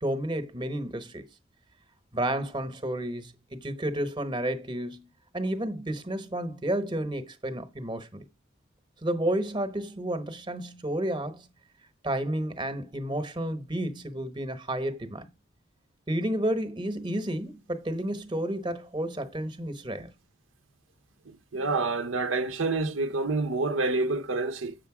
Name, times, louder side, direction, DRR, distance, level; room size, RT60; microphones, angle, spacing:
voice 1, 0.0-1.2 2.1-5.1 5.3-8.2 9.0-11.5 12.0-15.3 16.1-20.1, right 1 dB, 25° right, 1.0 m, -31 dB
voice 2, 21.5-24.8, right 3 dB, 90° right, 0.8 m, -27 dB
8.2 x 6.6 x 4.8 m
head